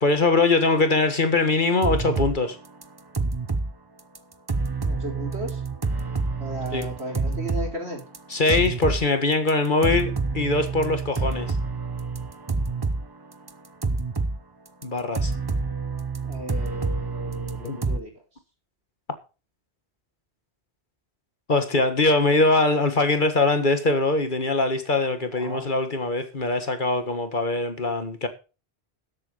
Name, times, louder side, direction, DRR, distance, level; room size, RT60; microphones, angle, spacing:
voice 1, 0.0-2.6 6.7-6.9 8.3-11.5 14.8-15.3 17.6-17.8 21.5-28.3, left 2 dB, 50° left, 1.7 m, -22 dB
sound 1, 1.8-2.4 2.7-3.7 4.0-4.2 4.5-7.7 8.0-9.1 9.5-9.6 9.8-13.0 13.3-14.4 14.8-18.0, right 3 dB, 25° right, 0.8 m, -27 dB
voice 2, 4.8-5.6 6.4-8.0 16.2-18.1 25.3-25.7, right 1 dB, 80° right, 4.3 m, -35 dB
13.0 x 8.2 x 5.5 m
omnidirectional pair, 1.1 m